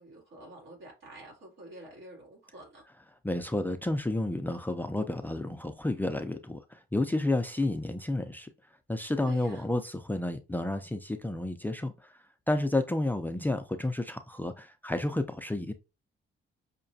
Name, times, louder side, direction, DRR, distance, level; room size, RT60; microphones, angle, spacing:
voice 1, 0.0-2.8 9.2-9.7, right 2 dB, 70° right, 2.1 m, -48 dB
voice 2, 3.2-8.5 8.9-12.1 12.5-15.7, left 2 dB, 10° left, 0.4 m, -31 dB
5.6 x 2.2 x 2.6 m
cardioid pair, 90°, 20 cm